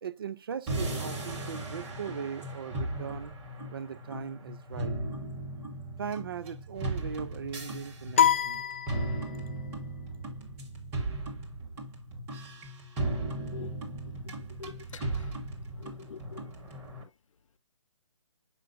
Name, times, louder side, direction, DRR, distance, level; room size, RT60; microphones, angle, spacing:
voice 1, 0.0-3.3 3.7-5.0 6.0-8.6, right 7 dB, 45° right, 0.5 m, -39 dB
sound 1, 0.7-17.0, right 2 dB, 15° right, 1.2 m, -37 dB
sound 2, 8.2-9.6, left 9 dB, 25° left, 0.3 m, -26 dB
voice 2, 14.6-15.3 15.8-16.4, left 6 dB, 80° left, 0.5 m, -45 dB
7.6 x 5.8 x 2.5 m
hypercardioid pair, 165°, 16 cm